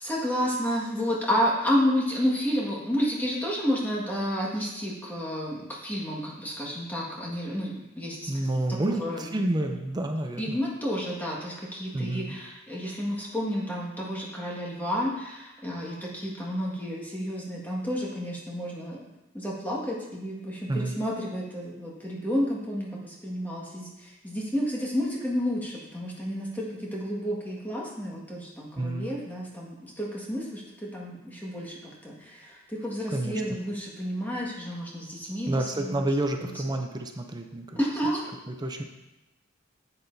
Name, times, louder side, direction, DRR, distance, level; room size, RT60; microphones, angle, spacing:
voice 1, 0.0-9.3 10.4-19.0 19.3-36.0 36.4-36.5 37.7-38.3, equal, 10° left, -4 dB, 1.7 m, -31 dB
voice 2, 8.3-10.6 11.9-12.4 20.7-21.0 28.8-29.1 33.1-33.6 35.5-37.8 38.5-38.8, right 1 dB, 20° right, 4 dB, 0.5 m, -29 dB
9.8 x 8.8 x 2.7 m, 0.99 s
head